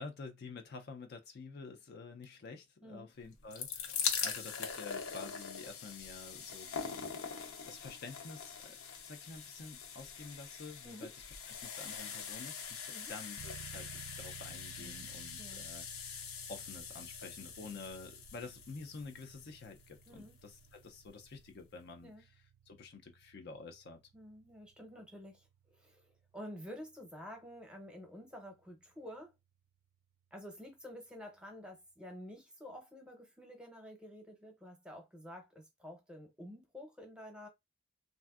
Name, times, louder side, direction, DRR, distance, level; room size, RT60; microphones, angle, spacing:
voice 1, 0.0-7.1 7.7-8.8 9.0-16.2 16.5-22.4 22.7-24.0, left 4 dB, 50° left, 0.4 m, -49 dB
sound 1, 3.3-20.3 21.1-21.2 21.3-21.4, left 6 dB, 80° left, 0.6 m, -43 dB
sound 2, 13.4-30.1, right 8 dB, 85° right, 0.3 m, -58 dB
voice 2, 14.8-15.1 15.4-15.6 20.1-20.4 22.0-22.2 24.1-29.3 30.3-37.5, equal, 5° right, 0.7 m, -50 dB
3.3 x 2.5 x 2.3 m
head